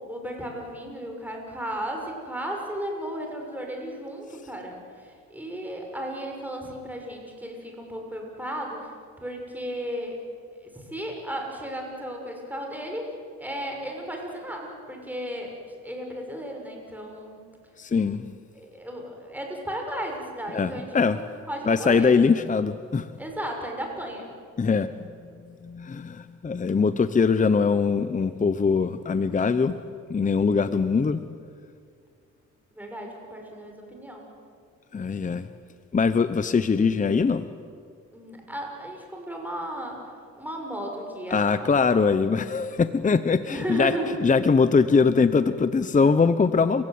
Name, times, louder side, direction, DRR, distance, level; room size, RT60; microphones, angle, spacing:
voice 1, 0.0-10.2 10.6-13.1 13.4-15.6 15.8-17.4 18.5-22.1 23.2-24.3 32.7-34.3 38.1-41.7 43.5-44.2, right 1 dB, 5° right, 1 dB, 6.6 m, -35 dB
voice 2, 17.8-18.2 20.5-21.2 21.7-23.1 24.6-25.1 25.6-29.8 30.1-31.2 34.9-35.5 35.9-37.5 41.3-43.9 44.2-46.8, left 5 dB, 25° left, 12 dB, 0.9 m, -22 dB
29.0 x 16.5 x 9.6 m, 2.2 s
cardioid pair, 90°, 30 cm